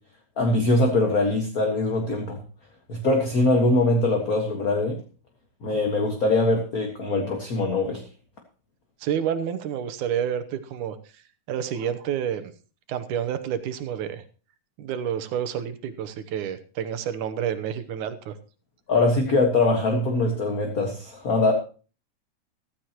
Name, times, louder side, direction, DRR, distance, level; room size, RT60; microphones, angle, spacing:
voice 1, 0.4-2.4 2.9-5.0 5.6-8.0 18.9-21.5, left 2 dB, 35° left, 2 dB, 1.6 m, -22 dB
voice 2, 9.0-11.0 11.5-12.5 12.9-14.2 14.8-18.3, right 9 dB, 75° right, 10 dB, 2.5 m, -29 dB
15.0 x 14.5 x 3.0 m, 0.36 s
omnidirectional pair, 3.6 m